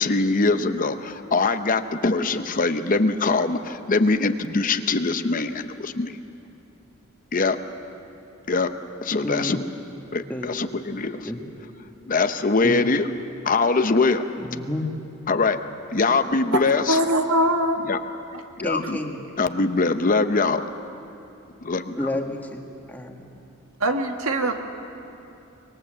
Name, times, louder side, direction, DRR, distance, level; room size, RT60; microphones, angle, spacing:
voice 1, 0.0-6.2 7.3-7.6 8.5-8.7 9.0-9.6 10.1-11.3 12.1-13.1 13.4-14.2 15.3-15.6 15.9-17.0 17.9-18.0 18.6-19.0 19.4-20.6 21.6-22.0, left 3 dB, 40° left, 9 dB, 0.8 m, -22 dB
voice 2, 9.2-9.6 10.3-10.5 11.3-11.4 12.6-12.8 14.4-14.9 18.6-19.2 22.0-23.2, left 1 dB, 10° left, 1 dB, 1.8 m, -30 dB
voice 3, 16.9-17.9 23.8-24.5, right 1 dB, 80° right, 4 dB, 1.8 m, -22 dB
25.0 x 21.5 x 7.7 m, 2.7 s
head